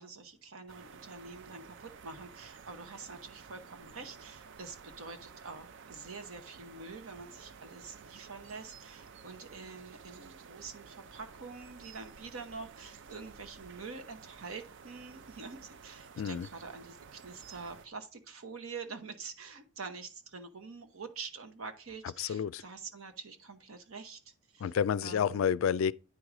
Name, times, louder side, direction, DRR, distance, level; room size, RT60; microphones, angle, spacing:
voice 1, 0.0-24.6 25.0-25.5, right 4 dB, 75° right, 1.0 m, -46 dB
sound 1, 0.7-17.9, right 6 dB, 60° right, 0.5 m, -53 dB
voice 2, 16.2-16.5 22.0-22.6 24.6-25.9, left 8 dB, 65° left, 0.3 m, -30 dB
9.3 x 4.8 x 3.8 m
head